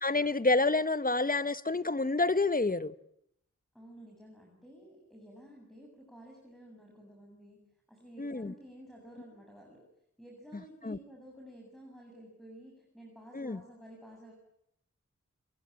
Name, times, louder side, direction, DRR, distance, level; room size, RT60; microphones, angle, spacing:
voice 1, 0.0-2.9 8.2-8.5 10.8-11.0 13.3-13.6, left 3 dB, 30° left, 1.2 m, -28 dB
voice 2, 3.7-7.6 7.9-9.8 10.2-14.3, right 1 dB, ahead, 7.9 m, -52 dB
29.5 x 21.5 x 9.1 m
wide cardioid pair, 75°, 29 cm